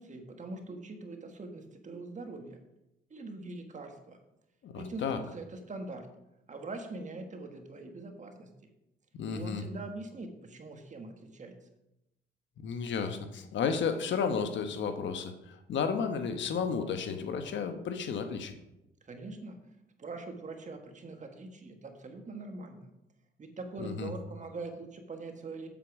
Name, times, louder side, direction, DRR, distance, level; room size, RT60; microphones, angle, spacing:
voice 1, 0.0-2.6 3.1-4.2 4.7-6.1 6.5-8.5 9.3-11.6 19.0-19.6 20.0-22.9 23.4-25.7, right 3 dB, 40° right, 5 dB, 1.5 m, -43 dB
voice 2, 4.6-5.2 9.2-9.6 12.6-18.5 23.8-24.1, left 6 dB, 70° left, 7 dB, 1.2 m, -33 dB
7.8 x 7.5 x 4.8 m, 0.90 s
cardioid pair, 90°, 20 cm